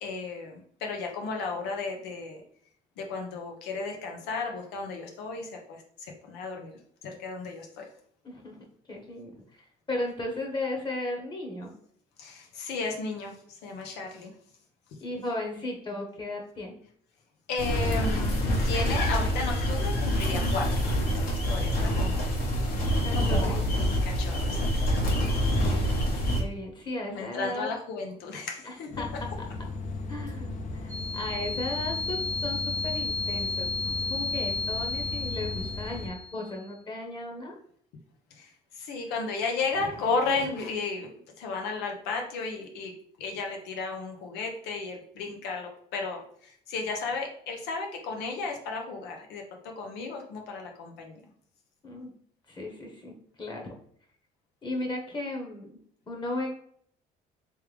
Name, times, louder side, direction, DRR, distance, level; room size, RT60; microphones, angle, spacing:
voice 1, 0.0-2.4 3.0-6.7 7.0-7.9 12.2-14.3 17.5-22.3 23.1-23.6 24.0-24.7 27.1-28.9 38.4-41.1 41.4-51.2, left 4 dB, 90° left, 2 dB, 0.9 m, -34 dB
voice 2, 8.2-8.6 8.9-11.7 15.0-16.8 23.0-23.9 25.5-26.1 26.4-27.7 28.6-29.1 29.4-29.5 30.1-37.5 51.8-52.1 52.5-53.7 54.6-55.8 56.1-56.5, left 2 dB, 25° left, 1 dB, 1.1 m, -36 dB
sound 1, 17.6-26.4, equal, 65° left, 1.4 m, -26 dB
sound 2, 28.9-36.1, left 3 dB, 45° left, 0.8 m, -37 dB
sound 3, 30.9-36.6, left 3 dB, 50° right, 0.8 m, -33 dB
3.3 x 3.3 x 3.4 m, 0.62 s
cardioid pair, 110°, 17 cm